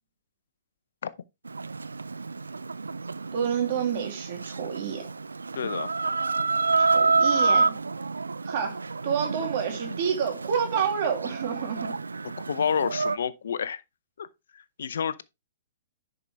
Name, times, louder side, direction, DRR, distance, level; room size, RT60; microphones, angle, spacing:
Chicken rooster, 1.5-13.2, right 4 dB, 80° right, 0.4 m, -28 dB
voice 1, 3.3-5.1 6.8-7.8 8.4-11.9, right 7 dB, 50° right, 2.5 m, -29 dB
voice 2, 5.5-5.9 12.5-13.8 14.2-14.3 14.5-15.2, left 7 dB, 65° left, 0.7 m, -29 dB
10.5 x 4.9 x 3.3 m
figure-of-eight pair, 115°, 0 cm